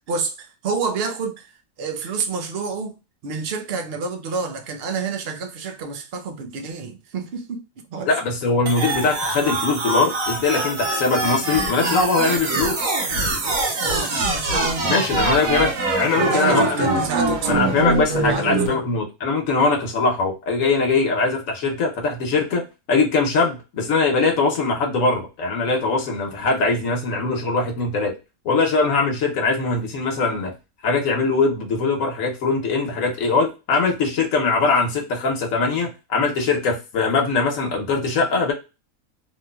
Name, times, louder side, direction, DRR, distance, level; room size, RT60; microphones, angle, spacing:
voice 1, 0.0-1.5 1.8-2.9 3.2-7.6 7.9-8.1 13.8-15.0 16.1-17.9 18.3-18.8, right 4 dB, 55° right, 0.8 m, -28 dB
voice 2, 8.1-12.9 14.9-16.9 17.5-22.6 22.9-28.1 28.4-30.5 30.8-38.5, left 3 dB, 70° left, 1.2 m, -21 dB
sound 1, 8.7-18.7, right 2 dB, 75° right, 1.4 m, -24 dB
3.0 x 3.0 x 2.2 m
omnidirectional pair, 1.5 m